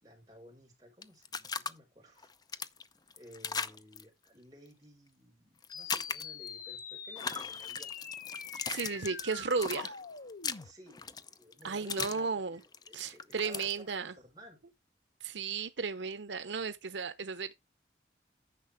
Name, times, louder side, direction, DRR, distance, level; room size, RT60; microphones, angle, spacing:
voice 1, 0.0-2.6 3.2-8.0 8.7-9.1 10.6-14.6, equal, 20° right, 4.7 m, -55 dB
sound 1, 1.0-1.7 2.2-4.0 5.6-6.5 7.1-12.2 12.5-13.8, left 5 dB, 20° left, 0.5 m, -38 dB
sound 2, 5.7-10.7, left 6 dB, 50° left, 1.0 m, -44 dB
voice 2, 8.7-9.9 11.6-12.6 12.9-14.1 15.2-17.5, right 5 dB, 85° right, 0.8 m, -34 dB
10.0 x 6.6 x 3.4 m
head